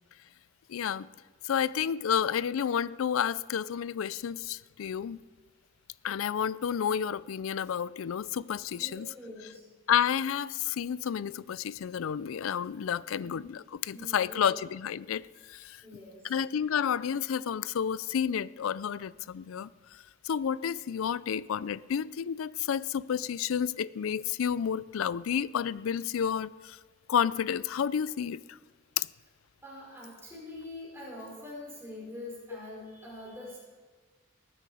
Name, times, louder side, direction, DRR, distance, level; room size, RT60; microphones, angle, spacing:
voice 1, 0.7-1.1 1.4-5.2 6.0-9.1 9.9-15.2 15.5-15.8 16.2-26.8 27.1-28.6 29.0-29.1, left 8 dB, 85° left, 0.4 m, -30 dB
voice 2, 8.7-9.6 13.9-14.6 15.8-16.3 29.6-33.6, left 1 dB, 10° right, 4.9 m, -44 dB
19.5 x 9.5 x 4.9 m
head